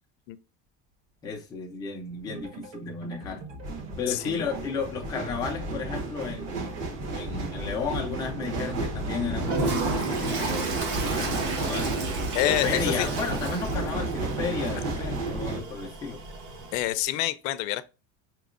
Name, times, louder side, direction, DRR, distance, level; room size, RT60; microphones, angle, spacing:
voice 1, 1.2-3.4 4.0-12.1 12.4-16.2, left 5 dB, 10° left, 0.4 m, -34 dB
sound 1, 2.2-2.4 3.4-15.6, right 2 dB, 55° right, 1.2 m, -32 dB
sound 2, 2.3-11.9, right 4 dB, 85° right, 1.3 m, -43 dB
voice 2, 4.1-4.5 12.3-13.1 16.7-17.8, left 15 dB, 90° left, 0.5 m, -27 dB
Toilet flush, 9.4-16.9, right 3 dB, 40° right, 0.9 m, -33 dB
5.2 x 2.9 x 2.4 m
cardioid pair, 180°, 37 cm